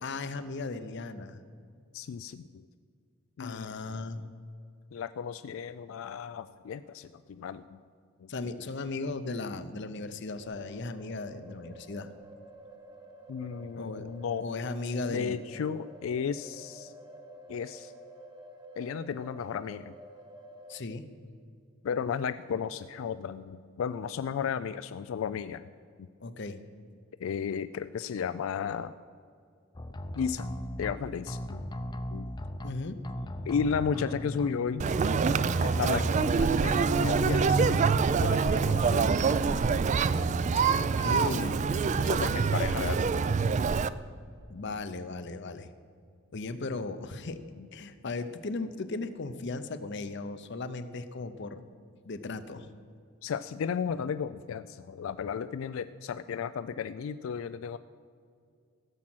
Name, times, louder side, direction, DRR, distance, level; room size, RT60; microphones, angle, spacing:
voice 1, 0.0-1.4 3.4-4.2 8.3-12.1 13.8-14.1 14.4-15.4 20.7-21.1 26.2-26.6 32.6-33.0 40.8-41.6 44.5-45.7 46.3-47.4 47.7-51.6 52.0-52.7, left 3 dB, 60° left, 11 dB, 0.7 m, -36 dB
voice 2, 1.9-2.6 3.4-4.1 4.9-7.8 8.2-8.7 13.3-14.5 15.1-16.9 17.5-17.9 18.8-20.0 21.8-25.7 26.0-26.1 27.2-28.9 30.1-30.5 30.8-31.7 32.1-32.3 33.5-34.9 35.6-39.1 42.0-43.1 47.6-47.7 53.2-57.8, left 6 dB, 75° left, 13 dB, 0.3 m, -34 dB
sound 1, 10.4-20.8, right 1 dB, 20° right, 1.0 m, -50 dB
sound 2, 29.7-30.9 31.3-32.7 33.0-34.5 34.8-36.3 36.6-38.0 38.4-39.8 40.1-40.3, left 1 dB, 20° left, 0.6 m, -38 dB
Conversation, 34.8-43.9, right 5 dB, 35° right, 0.3 m, -25 dB
16.0 x 7.4 x 6.1 m, 2.3 s
head